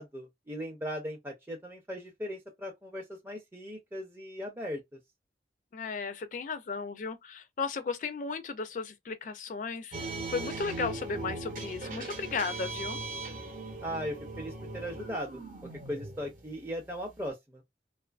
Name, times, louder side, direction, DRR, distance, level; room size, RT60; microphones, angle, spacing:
voice 1, 0.0-5.0 13.8-15.4 15.9-17.6, equal, 15° right, 0.5 m, -38 dB
voice 2, 5.7-13.0, left 4 dB, 45° left, 0.3 m, -35 dB
sound 1, 9.9-17.3, right 2 dB, 50° right, 0.7 m, -40 dB
2.5 x 2.4 x 2.3 m
head